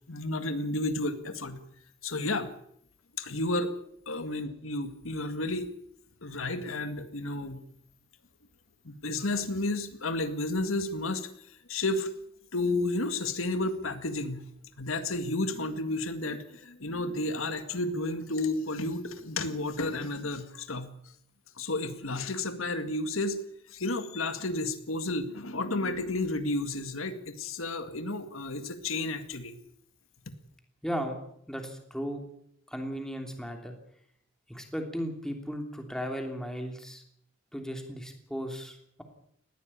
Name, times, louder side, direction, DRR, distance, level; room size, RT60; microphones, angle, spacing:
voice 1, 0.1-1.6 2.0-2.5 3.2-3.8 4.1-5.7 6.2-7.6 8.8-12.1 12.5-14.4 14.8-20.9 21.6-23.4 23.7-29.6, left 2 dB, 85° left, 9 dB, 1.9 m, -32 dB
voice 2, 30.8-31.2 31.5-32.2 32.7-33.7 34.5-37.0 37.5-39.0, equal, 5° left, 4 dB, 3.0 m, -36 dB
19.5 x 15.5 x 8.6 m, 0.70 s
head